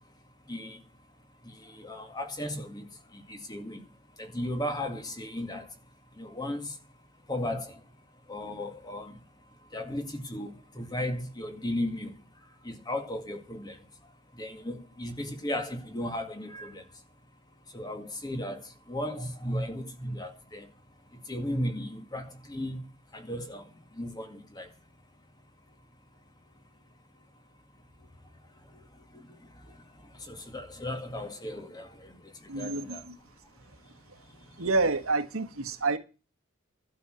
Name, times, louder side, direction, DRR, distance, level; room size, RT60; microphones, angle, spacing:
voice 1, 1.8-2.8 3.3-3.8 4.2-5.6 6.2-6.6 7.3-7.7 8.3-9.1 9.7-12.1 12.7-13.7 14.4-16.8 17.7-18.6 18.9-20.6 21.3-22.8 23.1-23.6 24.0-24.7 30.3-31.9 32.6-33.0, left 1 dB, 20° left, 2.1 m, -35 dB
voice 2, 32.5-33.2 33.7-33.8 34.1-34.2 34.5-36.0, right 3 dB, 80° right, 1.5 m, -29 dB
12.0 x 6.5 x 7.8 m
head